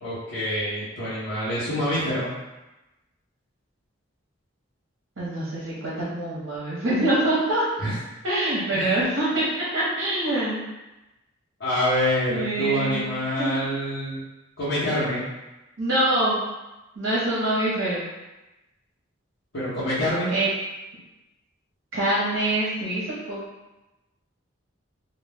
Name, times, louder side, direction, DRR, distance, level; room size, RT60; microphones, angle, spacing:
voice 1, 0.0-2.3 7.8-8.0 8.7-9.0 11.6-14.2 14.6-15.2 19.5-20.3, equal, 60° left, -13 dB, 0.8 m, -26 dB
voice 2, 5.2-7.7 8.2-10.6 12.3-13.1 13.4-13.6 15.8-16.4 17.0-18.1 20.3-20.5 21.9-23.4, right 1 dB, 80° right, -7 dB, 0.8 m, -25 dB
2.2 x 2.1 x 3.3 m, 1.0 s
head